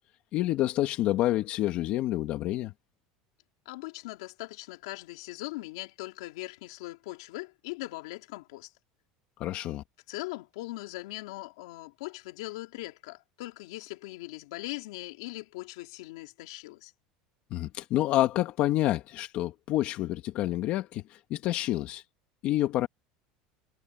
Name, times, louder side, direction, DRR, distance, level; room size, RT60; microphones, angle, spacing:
voice 1, 0.3-2.7 9.4-9.8 17.5-21.0 21.3-22.0 22.4-22.9, left 15 dB, 50° left, 1.8 m, -28 dB
voice 2, 3.6-8.7 10.1-16.9, left 20 dB, 85° left, 3.1 m, -40 dB
supercardioid pair, 130°, 3 cm